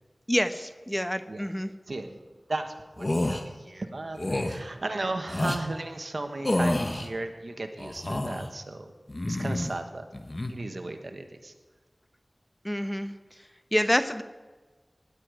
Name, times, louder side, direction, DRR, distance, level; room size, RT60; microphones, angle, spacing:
voice 1, 0.3-1.7 12.6-13.1 13.7-14.2, equal, 10° left, 10 dB, 1.0 m, -27 dB
voice 2, 1.9-2.2 2.5-8.9 9.3-10.0 10.5-11.5 13.9-14.0, right 2 dB, 80° right, 6 dB, 1.3 m, -35 dB
sound 1, 3.0-3.4 4.2-4.6 5.3-5.6 6.4-7.1 7.8-8.5 9.1-9.8 10.1-10.5, left 1 dB, 45° left, 1.4 m, -28 dB
17.5 x 11.0 x 5.0 m, 1.3 s
wide cardioid pair, 45°, 0 cm